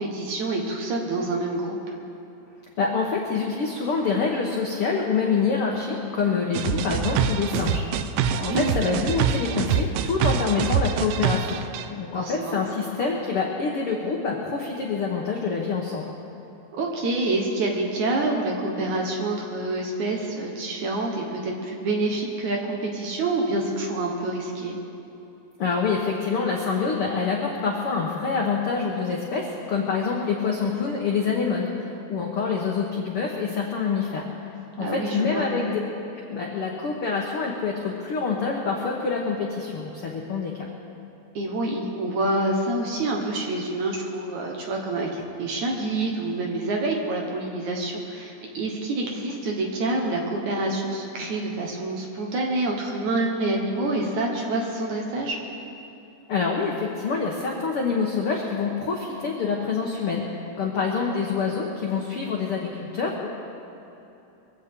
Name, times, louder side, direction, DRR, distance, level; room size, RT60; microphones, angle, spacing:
voice 1, 0.0-1.8 8.3-8.8 12.1-12.6 16.7-24.8 34.8-35.5 41.4-45.1 45.4-55.4, right 2 dB, 60° right, 1 dB, 2.4 m, -27 dB
voice 2, 2.8-7.8 8.4-11.6 11.9-16.1 25.6-31.7 32.1-34.2 34.8-35.8 36.2-40.5 56.3-63.3, left 5 dB, 70° left, -1 dB, 1.4 m, -26 dB
sound 1, 6.5-11.9, right 7 dB, 80° right, 2.4 m, -25 dB
23.0 x 16.0 x 3.7 m, 2.9 s
omnidirectional pair, 4.3 m